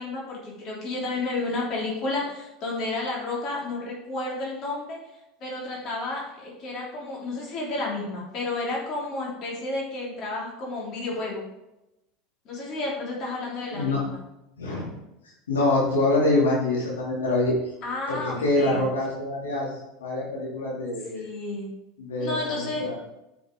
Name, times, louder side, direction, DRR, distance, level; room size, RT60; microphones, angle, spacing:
voice 1, 0.0-5.0 5.4-11.5 12.5-14.2 17.8-18.8 21.1-21.7 22.2-22.9, left 2 dB, 45° left, -3 dB, 3.4 m, -31 dB
voice 2, 13.7-14.0 14.6-14.9 15.5-17.5 18.1-19.7 20.0-21.2 22.0-22.9, left 2 dB, 85° left, -5 dB, 2.8 m, -25 dB
10.5 x 6.0 x 3.8 m, 0.91 s
hypercardioid pair, 80°, 0 cm